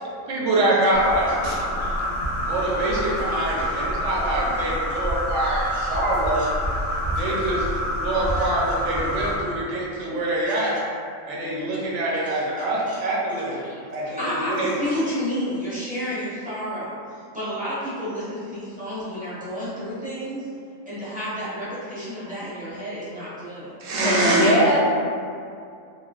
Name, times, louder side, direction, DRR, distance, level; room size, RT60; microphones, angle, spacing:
voice 1, 0.0-1.6 2.4-6.4 7.1-7.7 7.9-10.8 11.3-13.6 13.9-14.7 23.8-24.7, right 1 dB, 70° right, -4 dB, 0.9 m, -24 dB
sound 1, 0.9-9.4, equal, 40° left, 0.8 m, -27 dB
voice 2, 1.4-1.9 3.6-3.7 5.7-6.0 6.3-6.5 8.4-8.5 12.9-13.0 13.6-13.8 14.2-16.9 17.3-20.5 20.9-23.7 24.1-24.7, equal, 10° right, -13 dB, 0.6 m, -30 dB
voice 3, 24.0-24.9, equal, 70° left, -5 dB, 0.9 m, -20 dB
3.1 x 2.3 x 2.4 m, 2.4 s
omnidirectional pair, 1.3 m